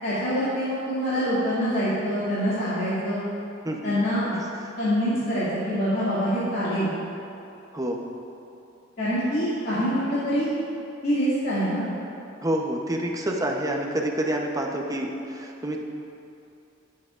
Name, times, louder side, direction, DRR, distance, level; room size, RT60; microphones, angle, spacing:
voice 1, 0.0-3.2 3.8-4.3 4.8-6.9 9.0-10.5 11.0-11.9, equal, 55° left, -12 dB, 2.5 m, -25 dB
voice 2, 4.3-4.8 7.7-8.1 12.4-15.8, right 1 dB, 20° right, 1 dB, 0.9 m, -28 dB
20.0 x 7.5 x 2.5 m, 2.7 s
head